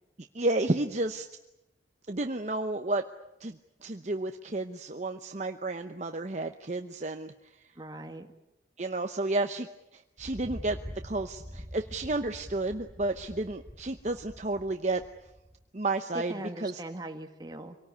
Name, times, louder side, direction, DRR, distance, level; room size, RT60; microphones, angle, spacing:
voice 1, 0.3-1.3 2.1-3.0 3.4-7.3 8.8-10.8 11.0-15.0 15.7-16.4 16.6-16.8, right 2 dB, 40° right, 7 dB, 0.8 m, -31 dB
voice 2, 7.8-8.3 16.1-17.8, right 2 dB, 25° right, 5 dB, 1.9 m, -40 dB
Thunder, 10.2-15.7, equal, 5° left, 2.8 m, -45 dB
25.5 x 18.5 x 9.7 m, 0.92 s
head